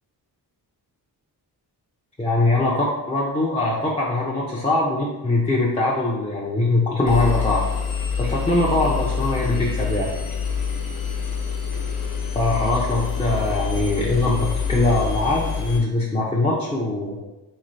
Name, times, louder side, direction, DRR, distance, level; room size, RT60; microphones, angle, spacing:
voice 1, 2.2-7.6 8.2-10.1 12.3-17.2, left 2 dB, 15° left, -6 dB, 0.6 m, -22 dB
Engine, 7.1-15.8, left 6 dB, 55° left, 0.7 m, -26 dB
3.6 x 3.2 x 2.6 m, 1.0 s
cardioid pair, 80°, 42 cm